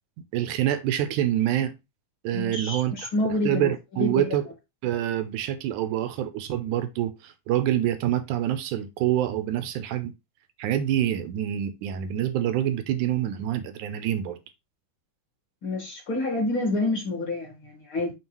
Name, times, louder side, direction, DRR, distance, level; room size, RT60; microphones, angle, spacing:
voice 1, 0.3-1.7 2.2-3.1 3.4-4.5 4.8-10.1 10.6-14.4, right 11 dB, 75° right, 2.1 m, -26 dB
voice 2, 2.3-3.7 4.0-4.2 15.6-18.1, left 2 dB, 40° left, 2.7 m, -28 dB
7.3 x 3.3 x 4.5 m
omnidirectional pair, 3.9 m